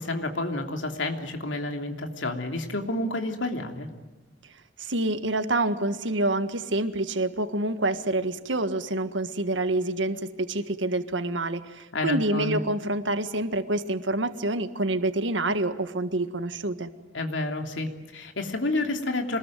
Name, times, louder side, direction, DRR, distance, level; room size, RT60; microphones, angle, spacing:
voice 1, 0.0-3.9 11.9-12.6 17.1-19.4, left 2 dB, 90° left, 4 dB, 3.1 m, -30 dB
voice 2, 4.8-16.9, right 2 dB, 80° right, 10 dB, 1.7 m, -27 dB
27.0 x 20.5 x 9.3 m, 1.2 s
head